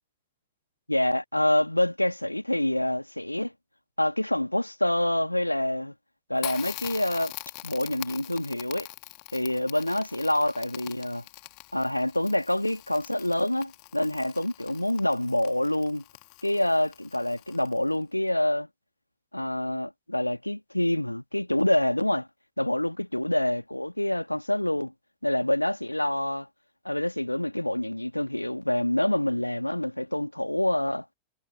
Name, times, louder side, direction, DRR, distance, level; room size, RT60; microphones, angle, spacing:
voice 1, 0.9-3.5 4.0-5.9 6.3-7.3 7.6-8.9 9.3-11.2 11.7-16.0 16.4-18.7 19.3-22.3 22.6-24.9 25.2-26.5 26.8-31.1, left 1 dB, 85° left, 2.7 m, -26 dB
Crackle, 6.4-18.0, left 40 dB or more, 45° left, 3.0 m, -43 dB
figure-of-eight pair, 90°, 0 cm